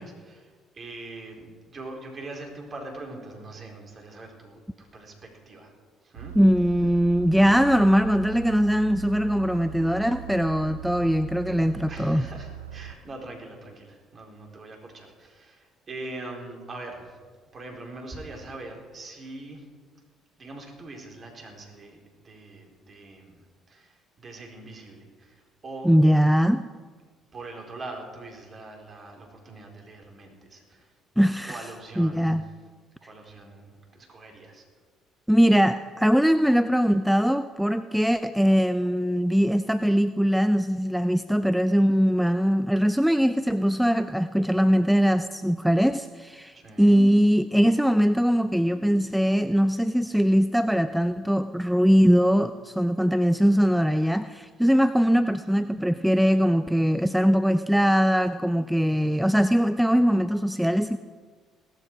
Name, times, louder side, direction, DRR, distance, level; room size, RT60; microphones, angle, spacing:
voice 1, 0.0-5.7 6.0-6.4 11.9-17.2 17.5-19.7 20.4-23.3 23.7-26.0 27.3-30.9 31.4-32.4 33.0-34.6 46.5-47.0, right 2 dB, 40° right, 1 dB, 4.5 m, -42 dB
sound 1, 6.1-12.9, right 11 dB, 85° right, 0.5 m, -40 dB
voice 2, 6.4-12.2 25.8-26.6 31.2-31.7 32.0-32.4 35.3-61.0, equal, ahead, 12 dB, 0.5 m, -21 dB
17.0 x 14.0 x 4.9 m, 1.5 s
figure-of-eight pair, 50°, 0 cm